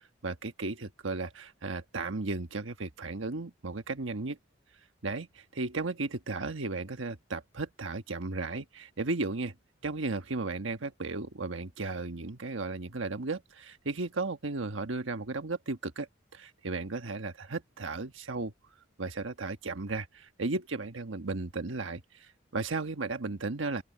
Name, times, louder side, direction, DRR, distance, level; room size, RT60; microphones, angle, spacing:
voice 1, 0.2-4.4 5.0-9.5 9.8-18.5 19.0-23.8, right 3 dB, 90° right, 1.3 m, -35 dB
open air
head